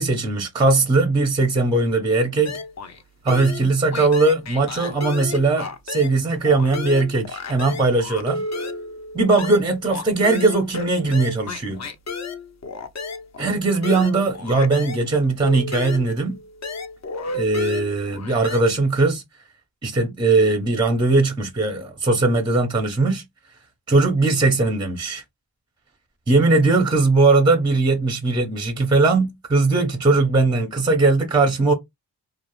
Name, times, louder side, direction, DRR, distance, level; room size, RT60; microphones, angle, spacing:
voice 1, 0.0-2.6 3.2-8.4 9.1-11.8 13.4-16.4 17.3-19.2 19.8-23.2 23.9-25.2 26.3-31.7, right 3 dB, 10° right, 0.5 m, -19 dB
sound 1, 2.5-3.0 3.3-6.2 6.5-15.1 15.4-18.6, left 3 dB, 40° left, 0.6 m, -32 dB
2.3 x 2.0 x 3.0 m
cardioid pair, 80°, 41 cm